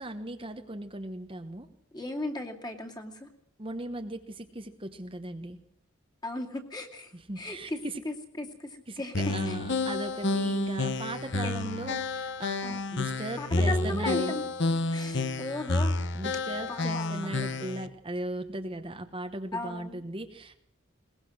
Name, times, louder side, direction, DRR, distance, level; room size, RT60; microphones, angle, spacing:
voice 1, 0.0-1.7 3.6-5.6 7.1-8.0 8.9-14.3 16.1-20.6, right 1 dB, 25° right, 5 dB, 1.0 m, -37 dB
voice 2, 1.9-3.3 6.2-9.1 9.5-9.6 11.4-11.9 12.6-12.8 13.4-14.4 14.9-16.0 16.7-17.3 19.5-20.0, left 1 dB, 20° left, 2 dB, 2.5 m, -37 dB
sound 1, 9.1-17.9, left 2 dB, 55° left, 1.0 m, -30 dB
22.0 x 20.0 x 6.3 m, 0.69 s
head